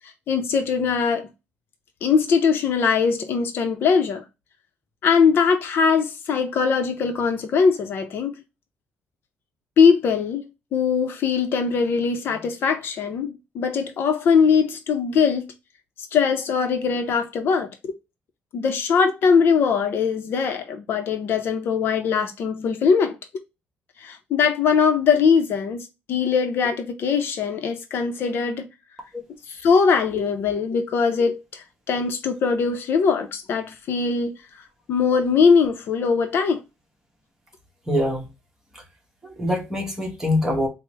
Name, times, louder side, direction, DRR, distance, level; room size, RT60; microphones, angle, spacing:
voice 1, 0.3-1.3 2.0-4.2 5.0-8.4 9.8-15.5 16.1-17.7 18.5-23.2 24.0-28.7 29.5-34.3 34.9-36.6, left 6 dB, 55° left, 0.6 m, -21 dB
voice 2, 37.9-38.3 38.7-38.8 39.2-40.7, left 1 dB, 10° right, 1.0 m, -24 dB
4.6 x 2.0 x 3.3 m
cardioid pair, 165°, 4 cm